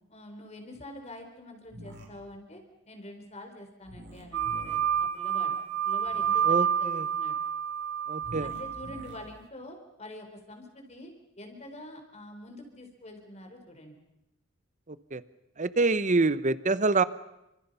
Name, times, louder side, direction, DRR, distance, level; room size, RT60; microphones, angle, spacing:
voice 1, 0.1-2.6 2.9-4.8 5.1-5.5 5.8-7.4 8.4-11.1 11.4-14.0, left 1 dB, 35° left, 4 dB, 4.7 m, -45 dB
sound 1, 1.7-2.0 3.8-4.8 6.0-6.4 8.2-9.1, equal, 60° right, 7.1 m, -45 dB
sound 2, 4.3-9.2, right 8 dB, 85° right, 2.6 m, -29 dB
voice 2, 6.5-7.1 8.1-8.5 14.9-15.2 15.6-17.0, right 3 dB, 35° right, 14 dB, 0.9 m, -26 dB
29.5 x 26.0 x 5.7 m, 0.91 s
head